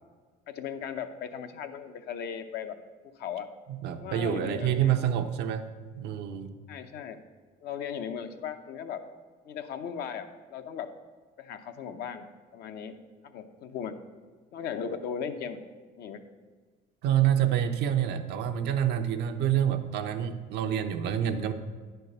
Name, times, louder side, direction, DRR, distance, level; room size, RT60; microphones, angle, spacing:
voice 1, 0.5-2.8 3.2-3.5 4.0-5.0 6.7-7.2 7.6-9.0 9.5-10.9 11.4-13.0 13.2-14.0 14.5-15.6 16.0-16.2, left 7 dB, 70° left, 8 dB, 0.7 m, -37 dB
voice 2, 3.7-5.7 6.0-6.5 17.0-21.5, right 10 dB, 85° right, 7 dB, 0.7 m, -27 dB
9.7 x 4.5 x 6.6 m, 1.5 s
cardioid pair, 110°, 17 cm